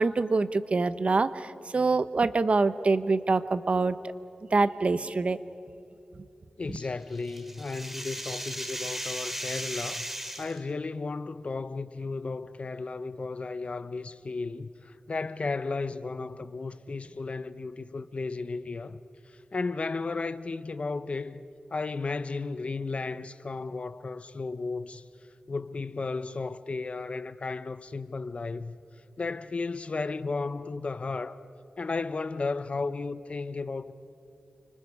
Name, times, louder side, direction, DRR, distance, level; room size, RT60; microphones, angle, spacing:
voice 1, 0.0-4.0 4.5-5.4, right 3 dB, 50° right, 0.9 m, -25 dB
voice 2, 6.6-10.1 10.4-19.0 19.5-21.4 21.7-25.0 25.5-28.8 29.2-31.4 31.8-33.9, left 3 dB, 50° left, 0.8 m, -34 dB
sound 1, 6.8-10.6, equal, 10° right, 2.4 m, -36 dB
30.0 x 25.0 x 4.8 m
cardioid pair, 70°, 3 cm